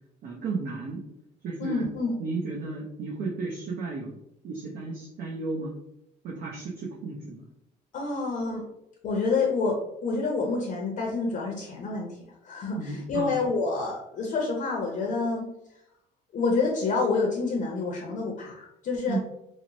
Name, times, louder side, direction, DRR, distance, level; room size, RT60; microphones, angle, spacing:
voice 1, 0.2-1.1 1.4-1.9 2.2-4.2 4.4-5.7 6.2-7.4 12.7-13.4 19.1-19.2, right 3 dB, 60° right, -4 dB, 0.6 m, -34 dB
voice 2, 1.6-2.1 7.9-8.6 9.0-12.2 12.4-15.5 16.3-19.2, left 3 dB, 50° left, 0 dB, 0.6 m, -28 dB
2.9 x 2.0 x 2.6 m, 0.81 s
cardioid pair, 110°, 17 cm